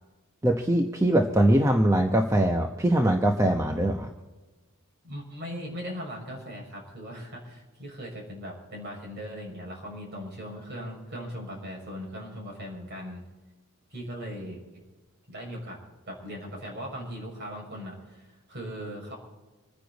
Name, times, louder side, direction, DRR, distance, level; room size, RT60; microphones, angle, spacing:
voice 1, 0.4-4.1, right 1 dB, 15° right, 3 dB, 0.9 m, -22 dB
voice 2, 5.0-13.2 13.9-14.6 15.3-15.8 16.1-19.2, equal, 50° right, -1 dB, 6.2 m, -39 dB
26.5 x 10.0 x 4.1 m, 1.2 s
head